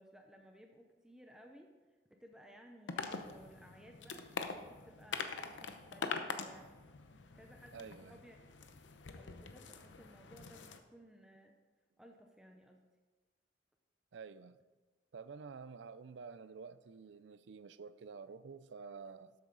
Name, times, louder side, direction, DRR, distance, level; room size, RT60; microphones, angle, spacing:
voice 1, 0.0-1.7 2.1-6.7 7.3-8.4 9.1-11.6 12.0-12.8, equal, 5° right, 0.6 m, -59 dB
sound 1, 2.9-10.8, left 4 dB, 85° left, 0.8 m, -44 dB
voice 2, 7.7-8.2 14.1-14.6 15.1-19.3, right 5 dB, 80° right, 0.4 m, -50 dB
12.5 x 7.8 x 3.9 m
head